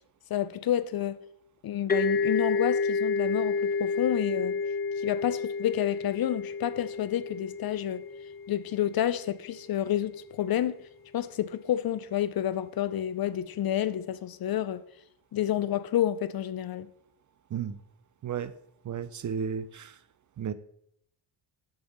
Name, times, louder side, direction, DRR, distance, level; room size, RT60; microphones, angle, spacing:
voice 1, 0.3-1.2 1.6-4.6 5.0-8.0 8.5-10.9 11.1-14.8 15.3-16.9, left 11 dB, 50° left, 0.5 m, -29 dB
sound 1, 1.9-9.4, left 4 dB, 20° left, 0.8 m, -30 dB
voice 2, 18.2-18.5 18.8-20.0 20.4-20.5, right 7 dB, 40° right, 0.4 m, -33 dB
8.8 x 3.5 x 6.3 m
cardioid pair, 90°, 49 cm